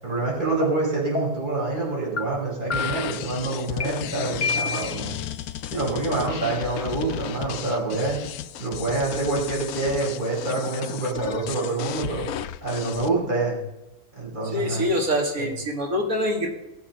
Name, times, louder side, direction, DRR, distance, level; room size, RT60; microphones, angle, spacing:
voice 1, 0.0-5.2 5.7-8.2 8.6-12.3 12.6-13.5 14.2-14.8 15.4-15.5, right 3 dB, 30° right, -5 dB, 5.5 m, -26 dB
sound 1, 0.6-0.7 1.1-1.5 2.2-2.3 2.7-3.2 3.8-3.9 4.4-5.0, left 5 dB, 40° left, 1.3 m, -28 dB
sound 2, 2.7-13.1, left 11 dB, 75° left, 1.1 m, -34 dB
voice 2, 14.5-16.5, equal, 65° right, 1 dB, 2.8 m, -25 dB
19.0 x 7.6 x 5.9 m, 0.94 s
omnidirectional pair, 1.6 m